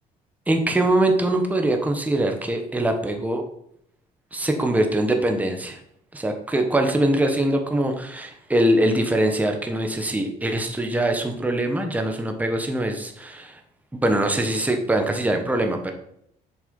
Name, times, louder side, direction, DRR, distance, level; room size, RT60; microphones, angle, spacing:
voice 1, 0.5-3.4 4.3-5.8 6.1-13.6 13.9-15.9, right 1 dB, 10° right, 4 dB, 1.3 m, -23 dB
7.2 x 6.8 x 5.3 m, 0.72 s
cardioid pair, 110°, 17 cm